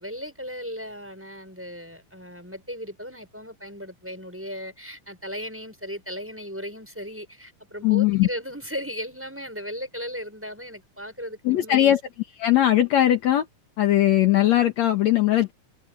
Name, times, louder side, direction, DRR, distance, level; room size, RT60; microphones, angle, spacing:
voice 1, 0.0-12.0, equal, 5° right, 6.6 m, -36 dB
voice 2, 7.8-8.3 11.5-12.0 12.4-13.5 13.8-15.5, left 13 dB, 65° left, 2.3 m, -19 dB
omnidirectional pair, 3.6 m